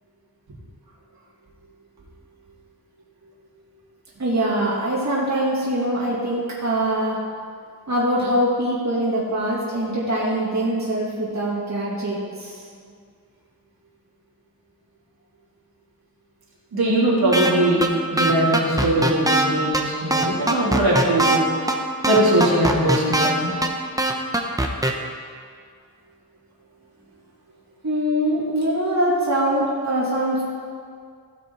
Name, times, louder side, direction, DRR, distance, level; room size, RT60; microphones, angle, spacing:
voice 1, 4.2-7.2 7.9-12.6 27.8-30.4, right 1 dB, 50° right, -6 dB, 2.3 m, -23 dB
voice 2, 16.7-17.9 18.1-21.5 22.0-23.5, right 1 dB, 85° right, -7 dB, 3.2 m, -20 dB
sound 1, 17.3-17.5 17.8-17.9 18.2-19.4 19.7-19.8 20.1-21.4 21.7-21.8 22.0-23.3 23.6-23.7 24.0-24.9, right 2 dB, 10° right, 0.9 m, -20 dB
16.5 x 6.0 x 4.7 m, 2.1 s
wide cardioid pair, 105°, 37 cm